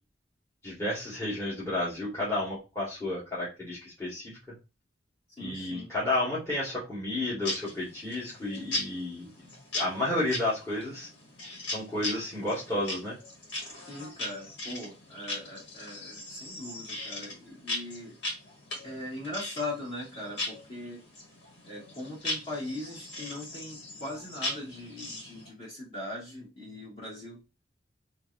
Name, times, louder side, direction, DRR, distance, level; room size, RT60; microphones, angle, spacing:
voice 1, 0.6-4.6 5.4-9.5 9.7-11.1 11.7-13.2, left 1 dB, 15° left, -8 dB, 1.8 m, -32 dB
voice 2, 5.4-5.9 13.9-18.2 18.8-21.0 21.6-27.4, left 1 dB, 35° left, -5 dB, 2.3 m, -40 dB
sound 1, 7.4-25.5, left 2 dB, 85° left, 1.9 m, -39 dB
4.5 x 2.9 x 2.7 m, 0.28 s
head